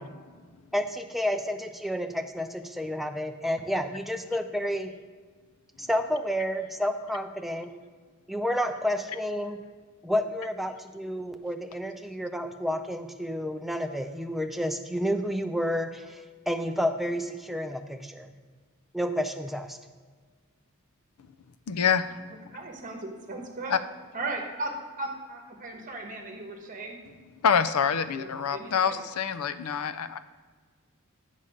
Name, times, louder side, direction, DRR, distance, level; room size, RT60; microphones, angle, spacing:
voice 1, 0.7-4.9 5.8-7.7 8.3-9.6 10.0-18.3 18.9-19.8, equal, ahead, 5 dB, 0.4 m, -30 dB
voice 2, 21.7-22.2 23.7-23.8 27.4-30.2, left 7 dB, 80° left, 12 dB, 0.5 m, -26 dB
voice 3, 22.5-23.8 24.1-27.0 28.1-29.0, right 2 dB, 35° right, 2 dB, 1.2 m, -37 dB
8.2 x 5.6 x 4.9 m, 1.5 s
head